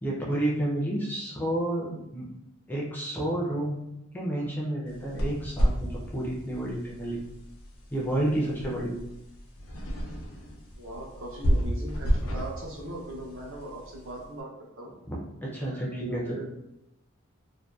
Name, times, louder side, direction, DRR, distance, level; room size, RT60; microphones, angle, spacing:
voice 1, 0.0-2.3 2.7-3.8 4.1-7.2 7.9-9.0 15.1-16.4, right 1 dB, 10° left, -5 dB, 0.4 m, -30 dB
sound 1, 4.9-14.2, equal, 85° left, 0.6 m, -31 dB
voice 2, 10.8-14.5 14.8-14.9 15.6-16.5, right 1 dB, 60° right, -2 dB, 0.6 m, -39 dB
2.6 x 2.1 x 2.2 m, 0.86 s
head